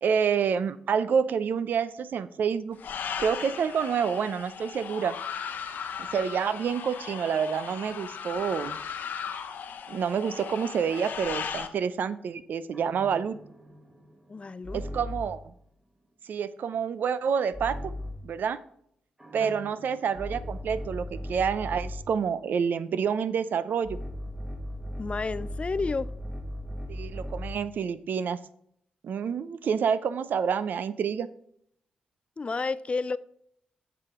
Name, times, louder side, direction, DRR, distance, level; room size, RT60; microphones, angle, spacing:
voice 1, 0.0-2.8 3.2-5.2 6.0-8.8 9.9-13.4 14.7-15.4 16.3-17.9 18.2-18.6 19.3-24.0 26.9-28.4 29.0-31.3, right 7 dB, 70° right, 0.5 m, -28 dB
sound 1, 2.8-11.7, left 7 dB, 75° left, 0.8 m, -37 dB
sound 2, 12.7-15.5 17.5-18.3 19.2-22.2 23.8-27.7, equal, 20° right, 1.7 m, -38 dB
voice 2, 14.3-14.8 19.4-19.5 25.0-26.1 32.4-33.2, left 4 dB, 40° left, 0.4 m, -31 dB
7.4 x 7.0 x 3.7 m
supercardioid pair, 50°, 3 cm